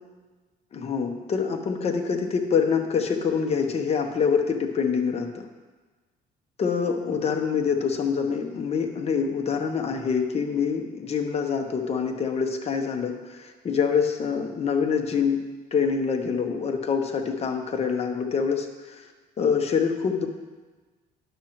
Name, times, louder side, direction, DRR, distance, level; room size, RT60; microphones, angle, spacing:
voice 1, 0.7-5.5 6.6-13.2 13.6-15.4 15.7-18.7 19.4-20.3, left 6 dB, 40° left, 5 dB, 0.9 m, -25 dB
11.0 x 6.1 x 3.0 m, 1.3 s
cardioid pair, 110°, 17 cm